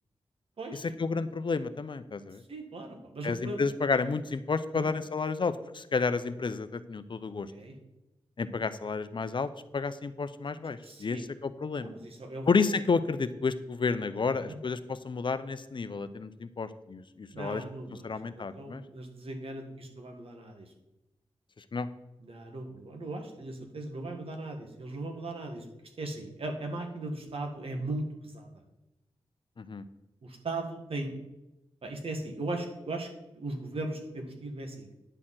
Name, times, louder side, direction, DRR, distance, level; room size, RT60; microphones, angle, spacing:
voice 1, 1.0-2.4 3.2-7.5 8.4-11.9 12.5-17.6 18.0-18.8 21.7-21.9 29.6-29.8, left 4 dB, 55° left, 12 dB, 0.6 m, -31 dB
voice 2, 2.5-3.6 4.7-4.9 7.5-7.7 10.8-11.3 11.8-12.5 14.1-14.6 17.3-20.7 22.2-25.6 26.0-28.5 30.2-31.1 31.8-33.1 33.3-34.9, right 2 dB, 70° right, 3 dB, 1.8 m, -38 dB
10.0 x 4.2 x 7.6 m, 0.95 s
cardioid pair, 45°, 10 cm